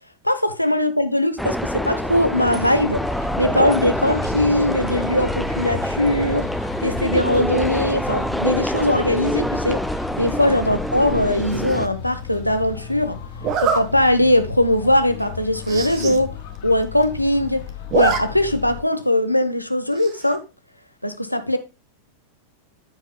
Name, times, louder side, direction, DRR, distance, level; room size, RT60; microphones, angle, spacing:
voice 1, 0.2-3.0 3.4-6.5 6.8-9.8 10.2-13.2 13.6-16.3 16.6-17.6 17.9-20.4 21.0-21.6, left 1 dB, 90° left, 0.9 m, -20 dB
sound 1, 1.4-11.9, equal, ahead, 0.4 m, -26 dB
sound 2, 2.0-18.8, left 6 dB, 50° left, 1.9 m, -35 dB
Zipper (clothing), 11.5-11.9 13.4-13.8 14.4-14.6 14.9-15.0 15.2-15.3 15.6-16.2 16.6-16.7 16.8-17.4 17.7-18.2 18.5-18.6 20.0-20.4, right 7 dB, 35° right, 1.3 m, -24 dB
14.0 x 5.0 x 2.3 m
figure-of-eight pair, 90°, 0 cm